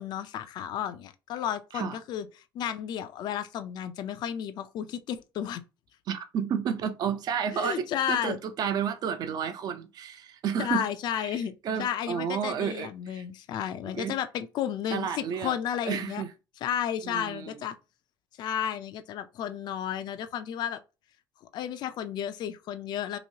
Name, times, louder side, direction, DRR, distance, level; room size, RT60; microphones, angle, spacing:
voice 1, 0.0-2.3 2.5-5.6 7.5-8.4 10.6-11.5 11.8-16.2 16.6-17.8 18.4-20.8 21.5-23.2, left 9 dB, 55° left, 0.4 m, -32 dB
voice 2, 6.1-10.9 11.1-11.4 11.6-13.2 14.0-14.2 14.9-15.5 15.8-16.3 17.0-17.5, right 7 dB, 50° right, 0.6 m, -31 dB
3.0 x 2.7 x 2.7 m
cardioid pair, 130°, 9 cm